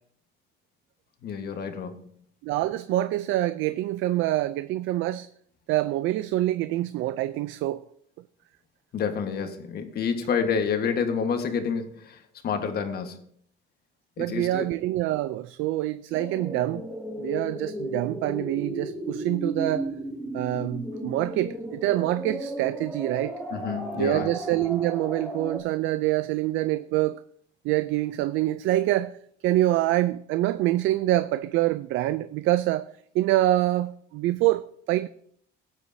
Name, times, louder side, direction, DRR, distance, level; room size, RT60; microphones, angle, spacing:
voice 1, 1.2-1.9 8.9-12.2 12.4-13.2 14.2-14.7 23.5-24.3, left 6 dB, 55° left, 1.4 m, -28 dB
voice 2, 2.4-5.3 5.7-7.8 14.2-16.9 17.2-19.9 20.3-23.4 23.9-27.2 27.6-29.2 29.4-35.1, right 15 dB, 80° right, 0.4 m, -26 dB
sound 1, 16.1-25.6, right 1 dB, 5° right, 2.2 m, -35 dB
18.0 x 8.1 x 2.7 m
cardioid pair, 135°, 20 cm